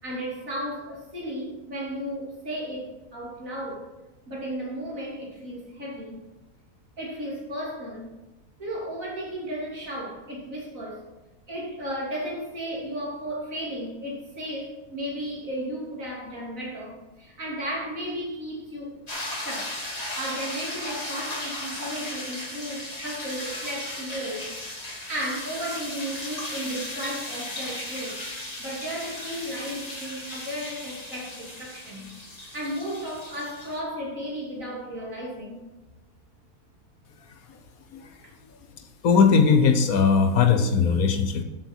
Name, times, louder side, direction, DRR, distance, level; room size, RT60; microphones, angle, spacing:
voice 1, 0.0-3.9 4.3-6.2 7.0-8.1 8.6-11.0 11.5-19.0 19.4-19.8 20.1-24.5 25.0-28.2 28.6-32.1 32.5-35.6, equal, 60° right, -3 dB, 3.6 m, -34 dB
sound 1, 19.1-33.8, left 1 dB, 25° left, 2.0 m, -36 dB
voice 2, 39.0-41.4, left 5 dB, 70° left, 7 dB, 1.4 m, -19 dB
13.0 x 8.0 x 4.6 m, 1.0 s
omnidirectional pair, 1.6 m